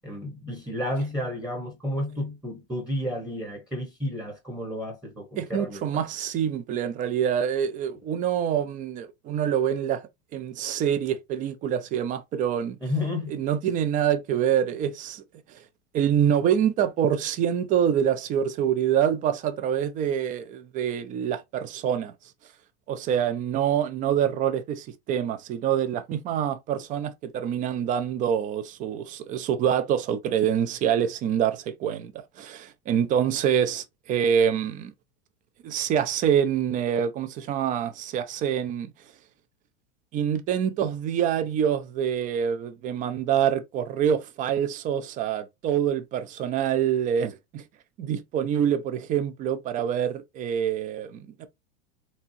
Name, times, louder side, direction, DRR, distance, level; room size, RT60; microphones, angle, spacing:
voice 1, 0.0-6.0 12.8-13.4, left 1 dB, 5° right, 0.9 m, -31 dB
voice 2, 5.4-12.8 13.3-15.2 15.5-15.6 15.9-22.1 22.9-32.1 32.4-34.9 35.6-38.9 40.1-47.6 48.0-51.5, right 9 dB, 25° right, 0.5 m, -26 dB
4.2 x 3.5 x 2.7 m
supercardioid pair, 155°, 35 cm